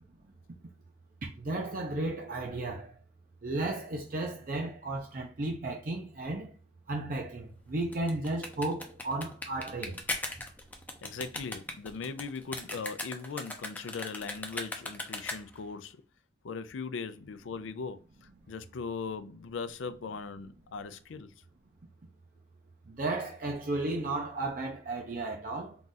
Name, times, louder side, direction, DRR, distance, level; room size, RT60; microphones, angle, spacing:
voice 1, 1.4-3.0 3.4-6.5 6.9-10.0 22.9-25.8, right 2 dB, 45° right, 0.5 m, -34 dB
sound 1, 7.8-15.7, left 2 dB, 10° left, 0.5 m, -39 dB
voice 2, 11.0-16.0 16.4-21.3, left 5 dB, 85° left, 0.4 m, -39 dB
3.8 x 2.4 x 3.9 m
head